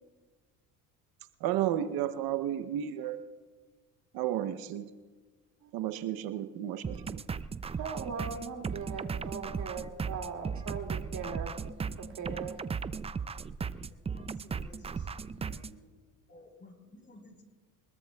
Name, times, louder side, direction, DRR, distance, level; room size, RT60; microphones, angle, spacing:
voice 1, 1.4-3.2 4.1-4.9 5.7-7.2, right 11 dB, 70° right, 0.8 m, -32 dB
sound 1, 6.8-15.7, right 5 dB, 15° right, 0.4 m, -37 dB
voice 2, 7.8-11.6 12.0-12.6, right 5 dB, 50° right, 2.4 m, -39 dB
voice 3, 13.8-14.8 15.3-15.8 16.3-17.4, left 2 dB, 30° left, 4.2 m, -54 dB
23.0 x 21.5 x 2.3 m
supercardioid pair, 90°, 37 cm